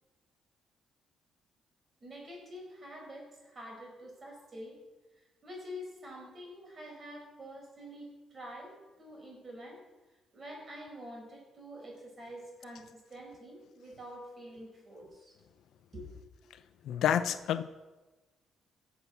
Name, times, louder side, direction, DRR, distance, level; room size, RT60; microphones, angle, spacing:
voice 1, 2.0-4.8 5.2-9.8 10.3-15.4 15.9-16.2, equal, 35° right, -1 dB, 5.6 m, -47 dB
voice 2, 16.8-17.6, left 9 dB, 75° left, 12 dB, 0.6 m, -28 dB
17.0 x 7.1 x 6.1 m, 1.2 s
cardioid pair, 90°, 0 cm